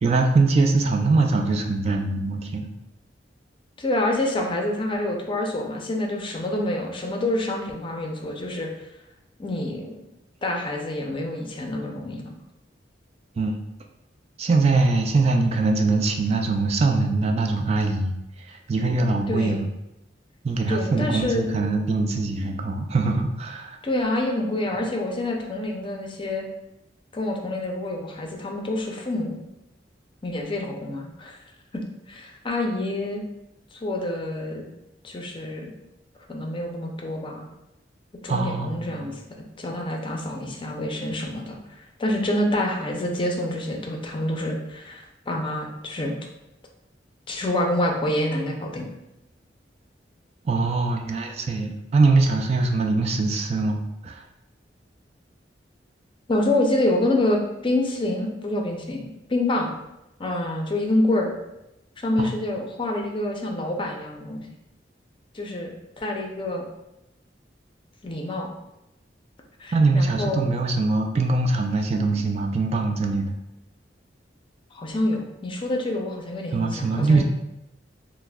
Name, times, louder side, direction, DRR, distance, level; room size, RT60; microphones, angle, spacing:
voice 1, 0.0-2.7 13.4-13.5 14.4-19.7 20.4-23.8 38.3-39.1 50.4-54.2 62.2-62.3 69.7-73.3 76.5-77.2, right 3 dB, 35° right, 3 dB, 0.3 m, -22 dB
voice 2, 3.8-8.7 9.4-9.9 10.4-12.3 19.3-19.6 20.7-21.5 23.8-26.5 27.1-29.4 30.2-31.4 31.7-33.2 33.8-34.7 35.0-35.7 36.3-37.5 38.2-39.2 39.6-46.2 47.3-48.9 56.3-59.7 60.2-61.3 62.0-64.5 65.3-66.6 68.0-68.5 69.6-70.4 74.7-77.2, left 1 dB, 30° left, 1 dB, 0.5 m, -27 dB
5.7 x 2.0 x 2.2 m, 0.91 s
head